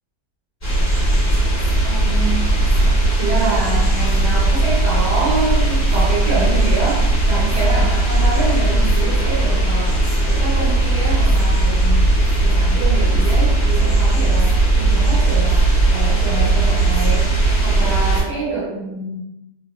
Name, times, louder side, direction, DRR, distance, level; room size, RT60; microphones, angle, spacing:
sound 1, 0.6-18.2, right 2 dB, 25° left, 0.9 m, -17 dB
voice 1, 1.8-2.5 3.2-10.0 10.3-12.1 12.4-19.2, right 3 dB, 75° right, -5 dB, 1.2 m, -26 dB
2.8 x 2.2 x 2.3 m, 0.91 s
omnidirectional pair, 1.9 m